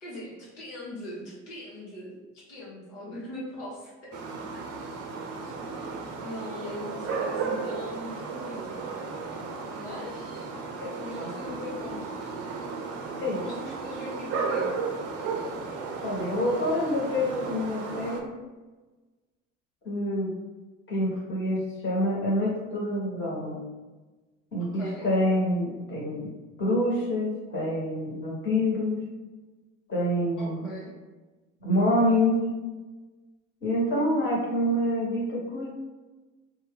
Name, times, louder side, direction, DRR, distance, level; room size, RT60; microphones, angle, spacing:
voice 1, 0.0-2.2 2.5-4.6 5.4-8.9 9.7-10.5 10.9-12.3 13.4-14.7 24.6-25.1 30.4-30.9, left 1 dB, 70° left, -8 dB, 1.1 m, -41 dB
sound 1, 4.1-18.2, right 4 dB, 40° right, 0.6 m, -34 dB
voice 2, 10.8-11.3 13.2-13.4 16.0-18.3 19.8-20.3 20.9-23.6 24.5-26.3 26.6-29.0 29.9-30.7 31.6-32.4 33.6-35.7, left 1 dB, 30° left, -5 dB, 1.4 m, -27 dB
2.6 x 2.3 x 3.6 m, 1.2 s
figure-of-eight pair, 65°, 37 cm